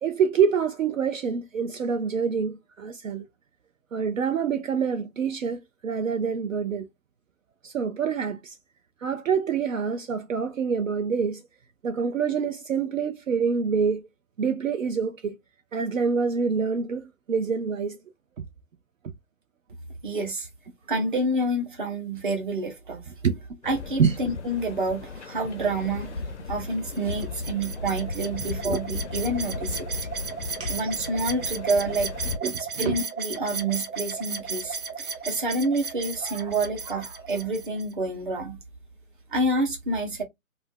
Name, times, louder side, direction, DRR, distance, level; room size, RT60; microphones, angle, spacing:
voice 1, 0.0-3.3 3.9-6.9 7.6-8.6 9.0-11.4 11.8-14.1 14.4-15.4 15.7-18.0 18.4-18.5 23.2-23.4 24.0-24.2 28.6-28.8 30.6-30.8 32.4-33.0, right 6 dB, 65° right, 0.5 m, -26 dB
voice 2, 20.0-20.5 20.9-23.0 23.6-29.8 30.7-32.1 32.8-38.6 39.3-40.2, right 2 dB, 35° right, 0.8 m, -28 dB
sound 1, 23.6-32.4, left 4 dB, 55° left, 0.5 m, -36 dB
sound 2, 26.9-37.9, right 5 dB, 80° right, 1.0 m, -35 dB
2.5 x 2.2 x 3.4 m
hypercardioid pair, 165°, 42 cm